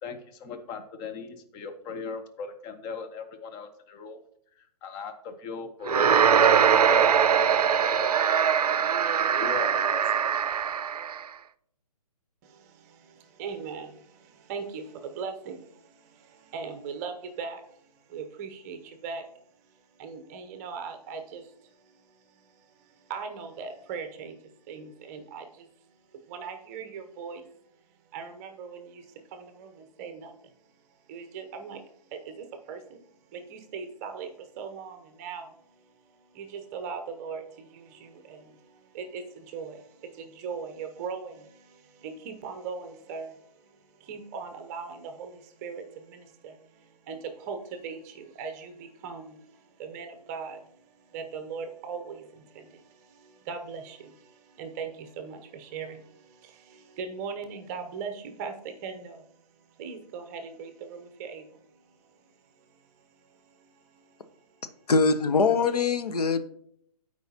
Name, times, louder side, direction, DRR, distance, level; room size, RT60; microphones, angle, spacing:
voice 1, 0.0-4.2 4.6-7.0 7.6-8.1 9.4-10.4, left 5 dB, 15° left, 0.5 m, -39 dB
sound 1, 5.9-11.2, right 7 dB, 70° right, 0.5 m, -22 dB
voice 2, 12.4-17.8 18.1-19.2 20.0-22.2 22.4-25.7 26.1-27.4 28.1-30.3 31.1-35.8 36.1-59.4 59.8-61.8 63.2-64.4, right 5 dB, 25° right, 0.7 m, -40 dB
voice 3, 64.9-66.4, left 4 dB, 70° left, 0.7 m, -22 dB
12.5 x 4.7 x 2.8 m
figure-of-eight pair, 135°, 20 cm